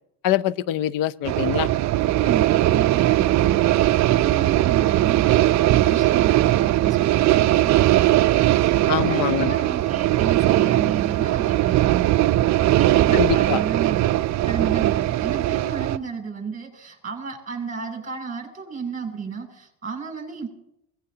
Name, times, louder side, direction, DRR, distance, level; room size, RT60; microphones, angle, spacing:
voice 1, 0.2-1.7 8.9-9.5 13.1-13.6, left 12 dB, 55° left, 19 dB, 0.6 m, -24 dB
sound 1, 1.2-16.0, right 15 dB, 45° right, 0.5 m, -19 dB
voice 2, 2.2-3.6 4.1-11.9 12.6-14.0 14.5-20.5, right 5 dB, 20° right, 0 dB, 7.4 m, -33 dB
24.0 x 19.0 x 2.9 m, 0.79 s
cardioid pair, 110°, 41 cm